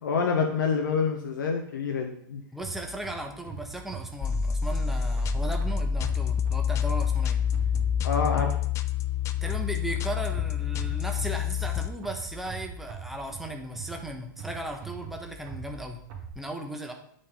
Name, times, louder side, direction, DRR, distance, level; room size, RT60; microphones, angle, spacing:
voice 1, 0.0-2.4 8.0-8.6, left 5 dB, 85° left, 2 dB, 1.0 m, -27 dB
voice 2, 2.5-7.4 9.4-16.0 16.3-16.9, right 1 dB, ahead, 2 dB, 1.0 m, -36 dB
sound 1, 2.6-8.7 9.5-16.3, right 5 dB, 50° right, 2.0 m, -42 dB
sound 2, 4.2-11.9, left 7 dB, 30° left, 0.4 m, -27 dB
8.6 x 4.1 x 3.7 m, 0.66 s
hypercardioid pair, 115°, 10 cm